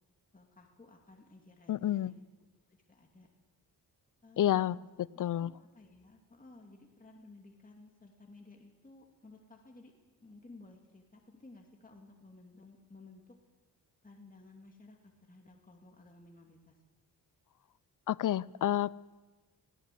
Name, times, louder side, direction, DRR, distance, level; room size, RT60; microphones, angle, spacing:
voice 1, 0.3-2.2 2.7-3.3 4.2-4.9 5.1-9.9 10.2-13.4 14.0-16.8, left 2 dB, 20° left, 1 dB, 2.5 m, -56 dB
voice 2, 1.7-2.1 4.4-5.5 18.1-19.0, left 12 dB, 50° left, 21 dB, 0.5 m, -30 dB
20.5 x 16.5 x 7.7 m, 1.2 s
cardioid pair, 75°, 40 cm